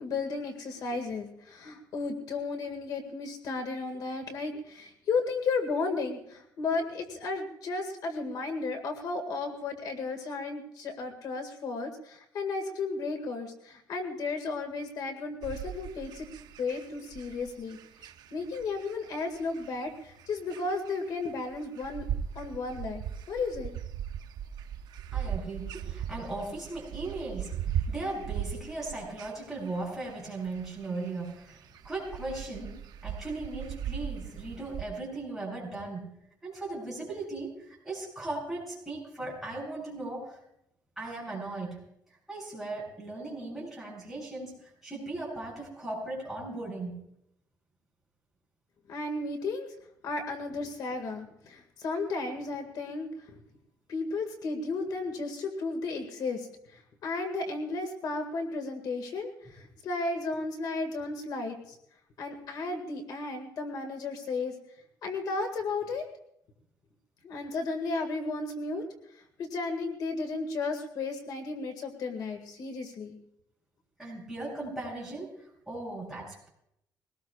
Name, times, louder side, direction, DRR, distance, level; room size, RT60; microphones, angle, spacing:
voice 1, 0.0-16.3 16.6-17.8 18.3-22.1 22.4-23.0 23.3-23.7 48.9-49.7 50.0-53.3 53.9-61.8 62.2-64.6 65.0-66.0 67.2-68.9 69.1-73.2, left 3 dB, 65° left, 4 dB, 1.9 m, -34 dB
sound 1, 15.4-34.8, right 9 dB, 70° right, 0.6 m, -39 dB
voice 2, 25.1-36.1 36.4-40.4 41.0-41.8 42.3-47.0 74.0-76.5, right 2 dB, 5° right, -3 dB, 7.2 m, -38 dB
22.5 x 18.5 x 2.4 m, 0.76 s
cardioid pair, 160°, 7 cm